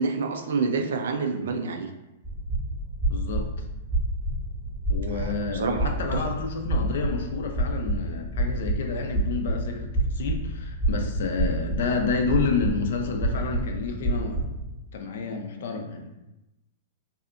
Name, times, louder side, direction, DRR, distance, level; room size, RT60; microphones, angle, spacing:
voice 1, 0.0-1.9 5.1-6.2, right 4 dB, 80° right, 6 dB, 0.4 m, -28 dB
sound 1, 2.2-14.7, right 1 dB, ahead, 0.8 m, -28 dB
voice 2, 3.1-3.5 4.9-14.5 14.9-16.1, left 4 dB, 70° left, 4 dB, 0.4 m, -30 dB
2.7 x 2.4 x 2.4 m, 0.96 s
hypercardioid pair, 150°, 0 cm